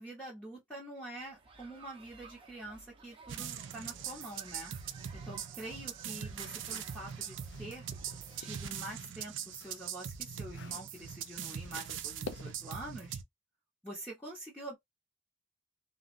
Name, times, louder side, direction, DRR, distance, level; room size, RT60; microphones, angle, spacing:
voice 1, 0.0-4.7 5.1-7.9 8.4-13.2 13.8-14.8, right 1 dB, 5° left, 0.8 m, -46 dB
sound 1, 1.2-8.8, right 4 dB, 30° right, 0.7 m, -55 dB
sound 2, 3.3-13.2, right 8 dB, 85° right, 0.4 m, -42 dB
sound 3, 6.3-8.6 9.0-12.8, left 4 dB, 70° left, 0.4 m, -51 dB
3.4 x 2.1 x 2.5 m
head